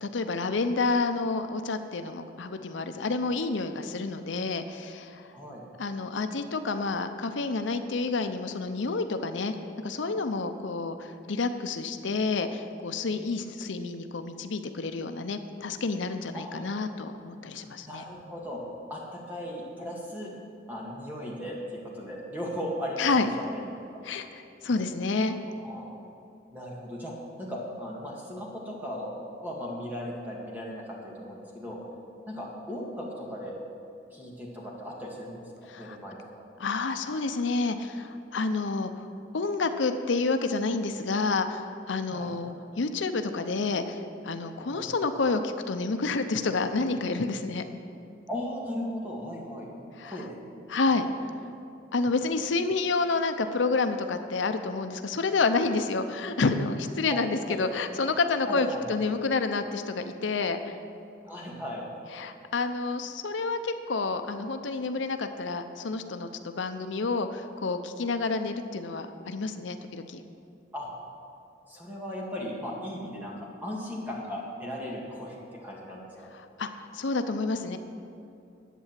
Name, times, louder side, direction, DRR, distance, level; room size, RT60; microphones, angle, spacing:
voice 1, 0.0-5.3 5.8-9.5 9.8-18.0 23.0-23.3 24.0-25.4 35.7-36.0 36.6-47.7 50.0-50.3 50.7-51.1 51.9-60.7 62.1-70.2 76.3-77.8, left 3 dB, 80° left, 8 dB, 0.6 m, -29 dB
voice 2, 16.3-16.8 17.8-18.6 18.9-20.3 20.7-21.6 21.9-23.4 25.5-25.9 26.5-29.1 29.4-31.8 32.3-33.6 34.1-35.4 35.8-36.2 42.1-42.3 44.7-44.9 48.3-49.7 50.0-50.4 50.9-51.1 57.1-57.2 57.5-57.6 58.5-59.0 61.3-61.9 70.7-70.9 71.7-73.3 73.6-76.0, equal, 10° right, -4 dB, 2.0 m, -37 dB
11.0 x 8.4 x 7.4 m, 2.7 s
head